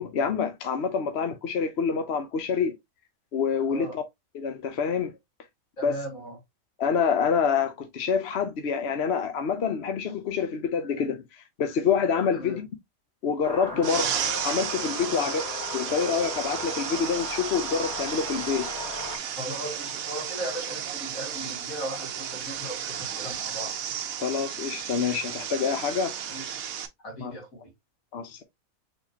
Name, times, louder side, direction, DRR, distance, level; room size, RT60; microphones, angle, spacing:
voice 1, 0.0-2.8 3.3-4.0 4.3-5.1 5.8-6.0 6.8-12.7 13.2-14.1 14.4-15.4 15.7-18.7 24.2-26.2 27.2-27.3 28.1-28.4, left 6 dB, 55° left, 0.9 m, -27 dB
voice 2, 3.7-4.0 5.8-6.4 12.3-12.6 13.7-14.0 15.1-15.3 19.3-23.7 26.3-26.5 27.0-27.7, right 1 dB, 75° left, 2.7 m, -37 dB
sound 1, 13.4-19.2, left 2 dB, 5° right, 2.9 m, -36 dB
sound 2, 13.8-26.9, right 9 dB, 85° right, 1.2 m, -33 dB
4.5 x 3.8 x 2.7 m
omnidirectional pair, 1.4 m